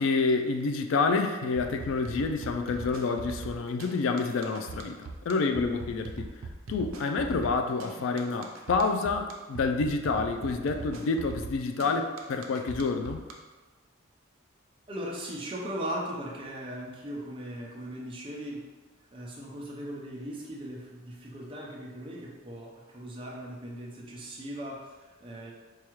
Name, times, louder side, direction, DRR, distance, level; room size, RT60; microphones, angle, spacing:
voice 1, 0.0-5.0 5.3-6.3 6.7-13.2, left 4 dB, 70° left, 6 dB, 0.3 m, -28 dB
sound 1, 1.6-13.3, right 3 dB, 80° right, 0.5 m, -40 dB
voice 2, 14.9-18.6 19.1-25.5, equal, 25° right, -3 dB, 0.6 m, -38 dB
4.6 x 2.3 x 3.0 m, 1.2 s
head